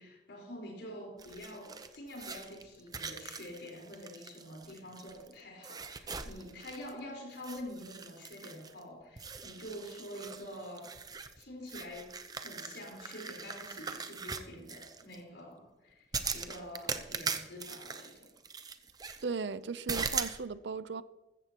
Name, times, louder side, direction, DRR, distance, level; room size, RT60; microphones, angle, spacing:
voice 1, 0.0-10.9 11.4-18.3, equal, 80° left, 4.5 m, -46 dB
sound 1, 1.2-5.3 5.6-7.0 7.3-8.8 9.2-15.2 16.1-19.2 19.9-20.4, right 5 dB, 20° right, 0.7 m, -41 dB
voice 2, 19.2-21.0, right 5 dB, 80° right, 0.6 m, -36 dB
14.5 x 14.5 x 3.0 m
head